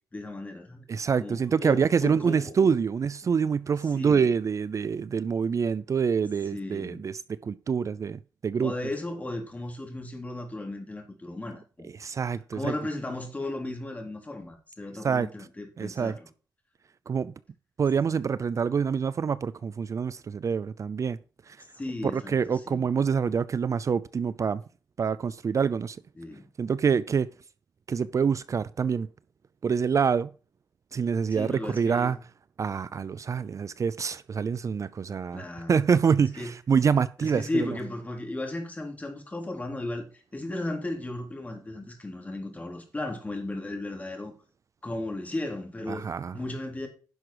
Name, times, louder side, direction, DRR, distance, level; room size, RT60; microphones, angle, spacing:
voice 1, 0.1-0.8 1.2-2.5 3.9-4.3 6.5-7.0 8.6-11.9 12.5-16.3 21.7-22.8 26.2-26.5 31.3-32.2 35.3-35.8 36.4-36.5 37.2-44.3 44.8-46.1 46.3-46.9, left 2 dB, 20° left, 3.4 m, -35 dB
voice 2, 0.9-8.7 12.0-12.7 15.0-15.3 15.8-16.1 17.1-17.3 17.8-21.2 21.5-21.6 22.1-24.6 25.0-26.0 26.6-27.3 27.9-29.1 29.6-30.3 30.9-32.2 32.6-37.8 45.9-46.4, right 6 dB, 45° right, 0.5 m, -26 dB
11.0 x 6.1 x 4.9 m
wide cardioid pair, 110°, 7 cm